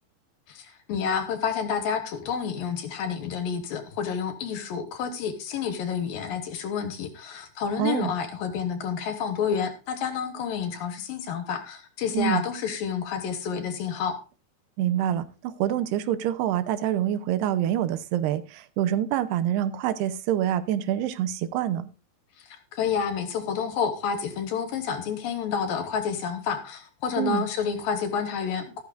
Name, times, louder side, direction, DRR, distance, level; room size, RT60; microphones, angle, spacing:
voice 1, 0.5-14.2 22.4-28.8, left 7 dB, 70° left, 2.6 m, -29 dB
voice 2, 7.8-8.1 12.1-12.4 14.8-21.9 27.2-27.5, right 11 dB, 80° right, 2.8 m, -26 dB
13.5 x 13.0 x 2.5 m
omnidirectional pair, 4.8 m